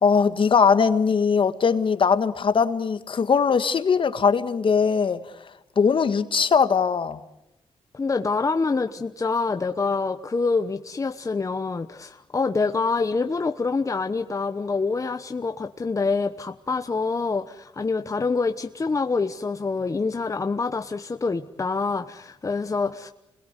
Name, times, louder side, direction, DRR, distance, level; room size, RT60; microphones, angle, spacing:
voice 1, 0.0-5.2 5.7-7.2, left 6 dB, 50° left, 11 dB, 1.7 m, -20 dB
voice 2, 7.9-23.1, left 4 dB, 30° left, 7 dB, 1.0 m, -26 dB
27.5 x 21.0 x 8.3 m, 0.87 s
cardioid pair, 75°, 11 cm